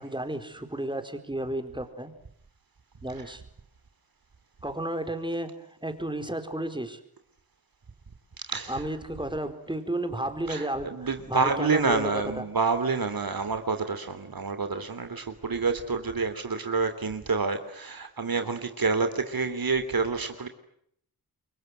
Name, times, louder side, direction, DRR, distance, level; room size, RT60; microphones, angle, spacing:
voice 1, 0.0-2.1 3.0-3.4 4.6-7.0 8.7-12.5, right 1 dB, 10° right, 7 dB, 4.4 m, -33 dB
voice 2, 8.5-8.9 10.5-20.5, right 4 dB, 65° right, 9 dB, 3.1 m, -28 dB
29.0 x 23.5 x 7.8 m, 0.70 s
wide cardioid pair, 80°, 37 cm